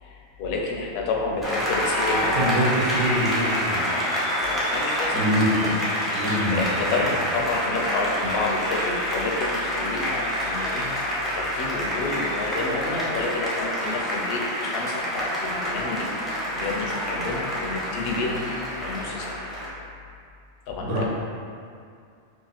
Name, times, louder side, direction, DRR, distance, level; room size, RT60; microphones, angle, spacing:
voice 1, 0.0-2.6 4.4-5.3 5.6-5.7 6.0-10.9 11.3-16.1 16.5-18.4 18.8-19.4 20.7-21.0, left 3 dB, 65° left, -1 dB, 0.7 m, -30 dB
Applause, 1.4-19.7, equal, ahead, 0.4 m, -27 dB
voice 2, 2.4-3.9 5.1-5.5 6.1-6.6 20.8-21.0, right 1 dB, 90° right, -6 dB, 1.2 m, -25 dB
2.9 x 2.6 x 4.1 m, 2.3 s
omnidirectional pair, 1.2 m